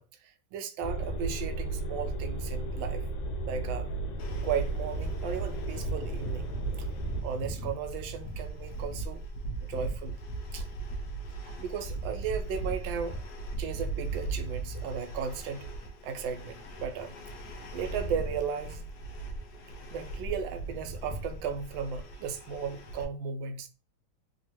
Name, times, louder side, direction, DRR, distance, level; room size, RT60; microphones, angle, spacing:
voice 1, 0.0-3.0 3.4-3.9 4.4-6.5 6.8-6.9 7.2-9.2 9.6-10.2 10.5-10.7 11.4-13.2 13.6-15.7 16.0-17.2 17.7-18.9 19.9-23.7, right 6 dB, 80° right, 1.3 m, -35 dB
sound 1, 0.8-7.2, right 2 dB, 85° left, 1.5 m, -34 dB
sound 2, 4.2-23.0, right 2 dB, 70° left, 1.0 m, -38 dB
3.5 x 2.3 x 2.9 m
omnidirectional pair, 2.2 m